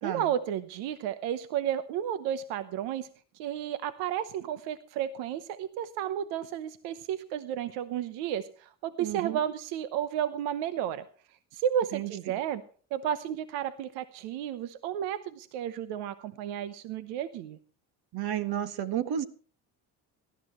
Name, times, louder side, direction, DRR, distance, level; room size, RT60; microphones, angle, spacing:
voice 1, 0.0-3.1 3.3-11.0 11.5-12.6 12.9-17.6, right 10 dB, 85° right, 13 dB, 1.0 m, -32 dB
voice 2, 9.0-9.4 11.9-12.4 18.1-19.3, right 10 dB, 60° right, 11 dB, 1.8 m, -32 dB
19.0 x 13.0 x 3.1 m, 0.42 s
supercardioid pair, 90°, 42 cm